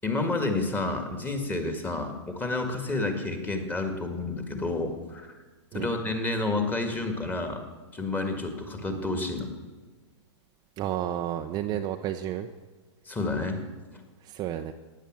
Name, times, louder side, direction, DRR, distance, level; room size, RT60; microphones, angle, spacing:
voice 1, 0.0-5.3 5.7-7.6 7.9-9.5 13.1-13.6, left 2 dB, 10° left, 5 dB, 2.0 m, -30 dB
voice 2, 10.8-12.5 14.2-14.7, right 11 dB, 25° right, 5 dB, 0.6 m, -31 dB
16.0 x 10.0 x 7.5 m, 1.3 s
hypercardioid pair, 135°, 15 cm